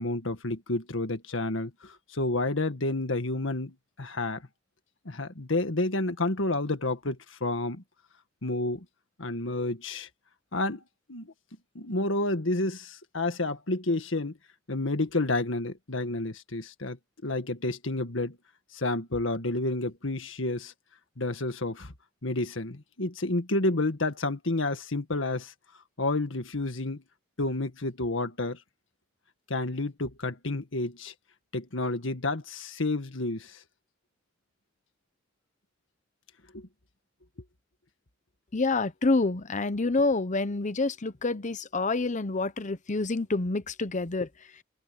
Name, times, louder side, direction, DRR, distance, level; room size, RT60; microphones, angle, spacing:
voice 1, 0.0-4.4 5.1-7.8 8.4-8.9 9.2-10.1 10.5-10.8 11.1-11.3 11.8-14.3 14.7-18.4 18.7-20.7 21.2-21.9 22.2-25.5 26.0-27.0 27.4-28.6 29.5-31.1 31.5-33.6 36.5-36.7, left 2 dB, 75° left, 1.8 m, -30 dB
voice 2, 38.5-44.3, left 3 dB, 40° left, 0.9 m, -27 dB
open air
head